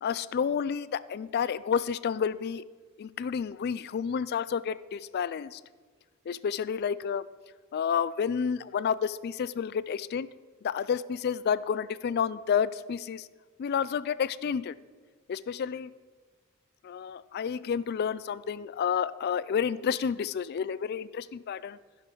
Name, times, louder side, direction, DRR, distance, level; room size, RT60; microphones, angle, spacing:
voice 1, 0.0-2.6 3.0-5.6 6.3-7.3 7.7-10.3 10.6-13.3 13.6-14.7 15.3-15.9 16.8-21.8, left 7 dB, 50° left, 17 dB, 0.3 m, -30 dB
16.0 x 5.8 x 3.8 m, 1.5 s
head